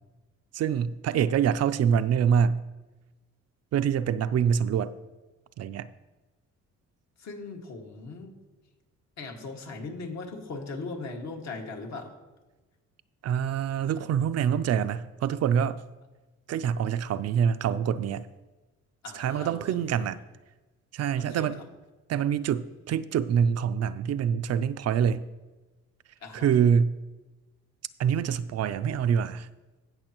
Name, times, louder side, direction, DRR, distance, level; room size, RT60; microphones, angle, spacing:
voice 1, 0.5-2.6 3.7-4.9 5.6-5.9 13.2-15.8 16.5-18.3 19.1-20.2 20.9-21.6 22.1-25.3 26.3-26.9 28.0-29.5, right 8 dB, 55° right, 13 dB, 0.5 m, -25 dB
voice 2, 7.2-8.3 9.2-12.1 19.0-20.1 21.2-21.5 26.2-26.6, left 3 dB, 65° left, 1 dB, 2.0 m, -39 dB
17.0 x 6.2 x 3.0 m, 1.2 s
cardioid pair, 90°, 30 cm